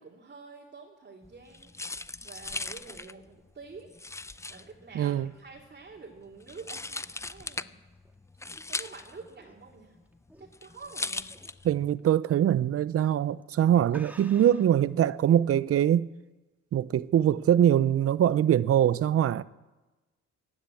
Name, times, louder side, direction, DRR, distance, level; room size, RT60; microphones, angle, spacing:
voice 1, 0.0-3.9 4.5-7.8 8.7-10.0 10.4-11.3, right 4 dB, 35° right, 2.6 m, -48 dB
sound 1, 1.2-12.0, left 2 dB, 10° left, 0.4 m, -39 dB
voice 2, 4.9-5.3 11.6-16.1 16.7-19.4, right 10 dB, 50° right, 0.6 m, -23 dB
sound 2, 7.8-10.9 11.3-11.6 12.0-12.1 12.9-13.1 13.4-13.5 13.9-14.8, right 1 dB, 5° right, 1.8 m, -52 dB
15.5 x 10.0 x 8.4 m
cardioid pair, 90°, 30 cm